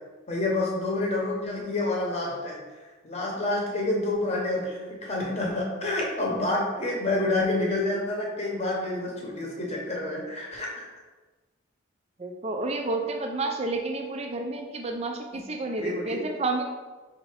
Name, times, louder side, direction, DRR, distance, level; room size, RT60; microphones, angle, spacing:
voice 1, 0.3-2.6 3.0-10.9 15.3-15.4 15.8-16.2, left 2 dB, 30° left, -2 dB, 0.9 m, -28 dB
voice 2, 12.2-16.6, right 2 dB, 30° right, 3 dB, 0.4 m, -30 dB
4.1 x 2.6 x 4.8 m, 1.3 s
head